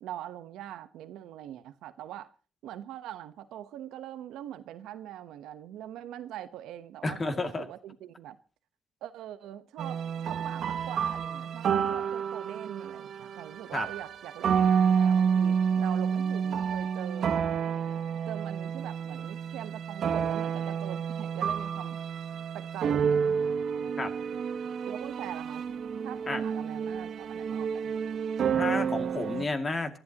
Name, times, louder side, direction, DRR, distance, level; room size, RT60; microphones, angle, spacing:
voice 1, 0.0-2.3 2.6-8.4 9.0-17.4 18.3-22.0 22.5-23.4 24.8-27.9, right 11 dB, 90° right, 1.0 m, -43 dB
voice 2, 7.0-7.7 13.7-13.9 24.0-24.1 26.3-26.4 28.5-30.0, left 3 dB, 30° left, 2.4 m, -31 dB
sound 1, 9.8-29.4, right 7 dB, 65° right, 1.2 m, -29 dB
23.5 x 12.0 x 3.0 m
cardioid pair, 90°, 0 cm